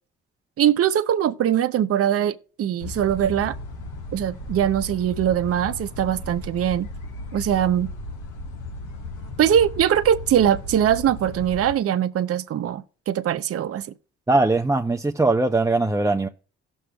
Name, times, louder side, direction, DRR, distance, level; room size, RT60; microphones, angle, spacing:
voice 1, 0.6-3.6 4.1-6.9 7.3-7.9 9.4-13.9, right 10 dB, 50° right, 0.6 m, -22 dB
sound 1, 2.8-11.7, left 2 dB, 80° left, 1.4 m, -35 dB
voice 2, 14.3-16.3, right 2 dB, 10° right, 0.6 m, -20 dB
17.0 x 6.3 x 2.3 m
supercardioid pair, 60°, 30 cm